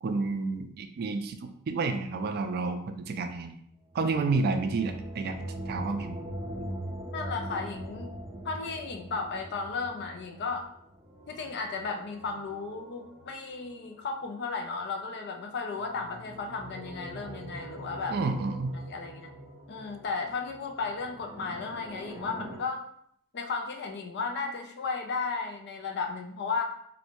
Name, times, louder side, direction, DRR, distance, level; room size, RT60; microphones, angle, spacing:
voice 1, 0.0-3.6 3.9-5.4 5.7-6.2 6.6-6.7 18.1-18.8, right 3 dB, 45° right, 7 dB, 0.3 m, -30 dB
sound 1, 3.9-14.6 15.8-22.6, right 1 dB, 15° right, 0.6 m, -42 dB
voice 2, 7.1-8.1 8.4-10.7 11.3-18.2 18.9-19.3 19.7-22.8 23.3-26.6, left 4 dB, 50° left, 3 dB, 0.5 m, -34 dB
3.1 x 2.7 x 2.9 m, 0.68 s
head